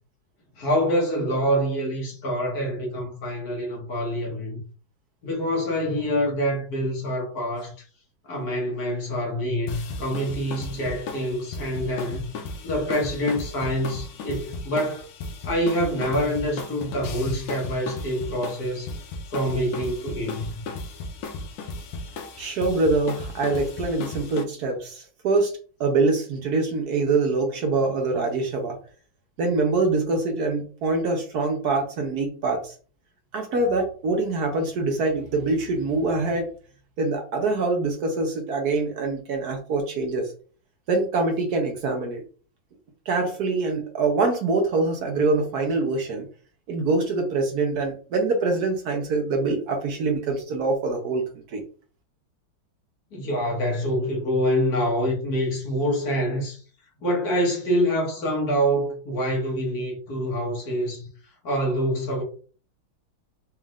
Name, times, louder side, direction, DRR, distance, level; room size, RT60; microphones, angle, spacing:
voice 1, 0.6-4.6 5.2-7.7 8.3-12.3 12.6-15.1 15.4-18.9 19.3-20.6 53.1-56.6 57.0-61.1 61.4-62.2, equal, 50° left, 1.6 m, -26 dB
sound 1, 9.7-24.4, left 3 dB, 80° left, 1.6 m, -35 dB
voice 2, 22.4-25.5 25.8-28.8 29.4-32.7 33.3-36.5 37.0-40.3 40.9-42.2 43.1-46.3 46.7-51.2 51.5-51.6, right 3 dB, 65° right, 1.0 m, -24 dB
4.2 x 3.5 x 2.4 m
omnidirectional pair, 2.3 m